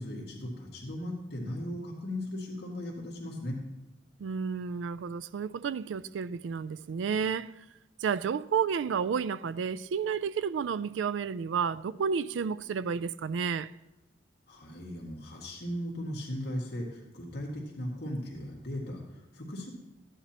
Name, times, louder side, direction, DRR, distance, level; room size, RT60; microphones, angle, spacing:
voice 1, 0.0-3.6 14.5-19.7, left 1 dB, 60° left, 2.0 m, -37 dB
voice 2, 4.2-7.6 8.0-13.7, right 6 dB, 80° right, 0.3 m, -31 dB
14.5 x 9.9 x 2.9 m
head